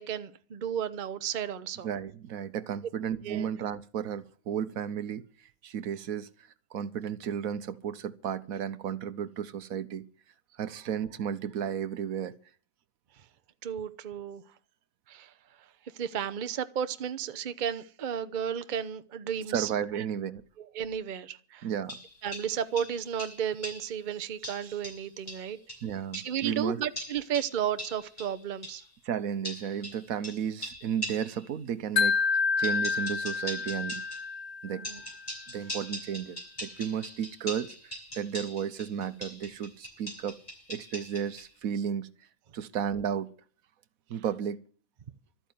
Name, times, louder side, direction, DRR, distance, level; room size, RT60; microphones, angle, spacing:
voice 1, 0.0-1.9 3.2-3.5 13.6-14.4 15.1-15.3 15.9-19.7 20.6-21.7 22.2-25.6 26.1-28.8 34.7-35.0, right 8 dB, 40° right, 0.8 m, -33 dB
voice 2, 1.8-10.0 10.5-12.3 19.5-20.4 21.6-22.0 25.8-26.8 29.0-34.0 34.6-34.8 35.5-40.4 40.7-42.1 42.5-43.3 44.1-44.6, right 8 dB, 80° right, 1.3 m, -33 dB
sound 1, 21.9-24.0 24.4-26.4 27.0-28.9 29.4-31.5 32.6-34.3 34.8-41.5, equal, 25° left, 5.6 m, -42 dB
Wind chime, 32.0-35.1, left 5 dB, 60° left, 1.4 m, -29 dB
13.0 x 9.0 x 9.3 m
omnidirectional pair, 1.5 m